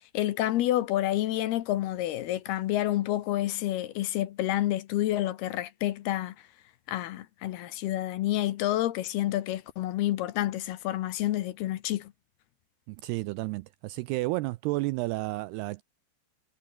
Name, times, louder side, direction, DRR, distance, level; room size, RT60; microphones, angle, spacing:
voice 1, 0.1-6.3 6.9-12.1, left 14 dB, 70° left, 2.8 m, -29 dB
voice 2, 12.9-15.8, right 20 dB, 85° right, 2.3 m, -31 dB
omnidirectional pair, 5.1 m